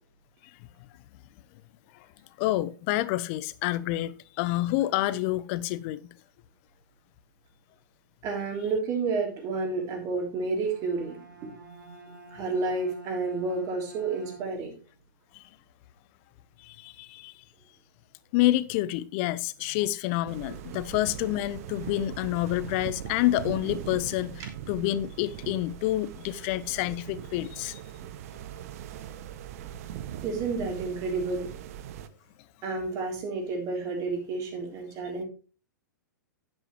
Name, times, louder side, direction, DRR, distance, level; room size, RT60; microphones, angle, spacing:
voice 1, 2.4-6.0 15.3-15.4 16.6-17.3 18.3-27.8, left 15 dB, 40° left, 0.6 m, -28 dB
voice 2, 8.2-11.2 11.4-11.5 12.3-14.7 30.2-31.5 32.6-35.2, right 3 dB, 30° right, 3.3 m, -30 dB
Bowed string instrument, 10.5-14.8, right 2 dB, 80° right, 2.3 m, -48 dB
sound 1, 20.3-32.1, right 10 dB, 50° right, 0.8 m, -40 dB
10.0 x 8.7 x 3.1 m
figure-of-eight pair, 110°, 10 cm